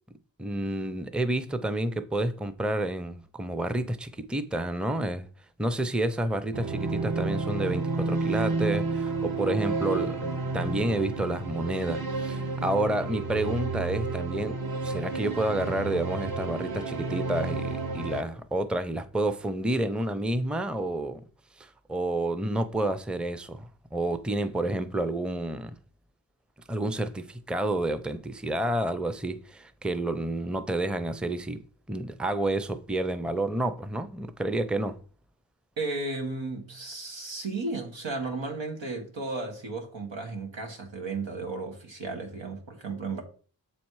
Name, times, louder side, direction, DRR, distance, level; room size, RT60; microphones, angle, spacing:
voice 1, 0.4-5.3 5.6-14.6 14.8-21.2 21.6-25.7 26.7-31.6 31.9-35.0, right 1 dB, ahead, 0.6 m, -29 dB
sound 1, 6.5-18.2, right 3 dB, 55° right, 1.1 m, -31 dB
voice 2, 35.8-43.2, right 3 dB, 85° right, 1.6 m, -34 dB
7.1 x 4.2 x 4.7 m
cardioid pair, 50°, 44 cm